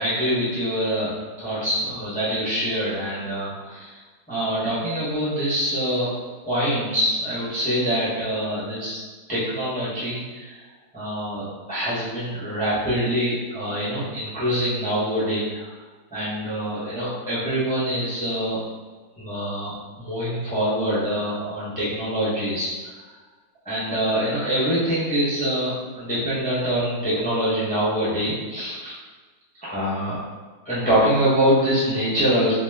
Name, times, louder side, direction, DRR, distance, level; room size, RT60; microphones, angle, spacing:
voice 1, 0.0-4.0 4.3-6.1 6.5-9.0 9.3-10.5 10.9-15.7 16.1-18.6 19.2-22.7 23.6-28.9 29.6-30.2 30.6-32.5, equal, 10° left, -11 dB, 0.5 m, -24 dB
2.9 x 2.2 x 3.3 m, 1.4 s
omnidirectional pair, 1.6 m